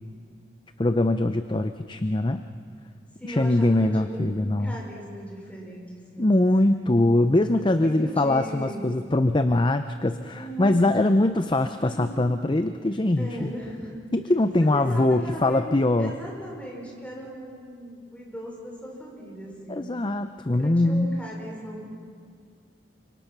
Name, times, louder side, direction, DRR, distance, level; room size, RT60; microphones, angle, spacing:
voice 1, 0.8-2.4 3.3-4.8 6.2-13.5 14.1-16.1 19.7-21.2, left 2 dB, 25° left, 9 dB, 0.6 m, -22 dB
voice 2, 3.2-4.3 4.6-5.9 6.1-6.3 7.7-9.0 10.3-11.3 11.8-12.1 13.2-14.0 14.7-19.9 20.6-21.8, right 1 dB, 5° left, -2 dB, 5.3 m, -38 dB
29.0 x 25.5 x 6.0 m, 2.1 s
head